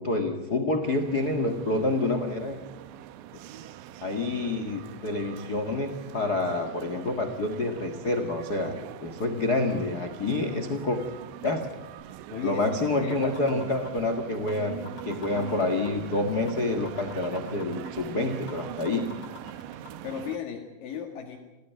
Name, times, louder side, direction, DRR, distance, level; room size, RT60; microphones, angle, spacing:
voice 1, 0.0-2.6 4.0-8.8 9.0-11.0 11.4-11.6 12.4-19.1, left 2 dB, 85° left, 7 dB, 0.8 m, -28 dB
sound 1, 0.8-20.4, right 11 dB, 85° right, 3.3 m, -43 dB
sound 2, 12.0-12.1 12.5-12.6 12.9-14.0 14.5-14.6 14.9-16.0 16.5-16.6 16.9-18.0 18.5-18.6 18.9-19.9, left 4 dB, 25° left, 3.8 m, -44 dB
voice 2, 12.3-13.6 19.7-21.4, left 8 dB, 60° left, 0 dB, 3.3 m, -36 dB
27.5 x 16.5 x 9.3 m, 1.1 s
omnidirectional pair, 5.1 m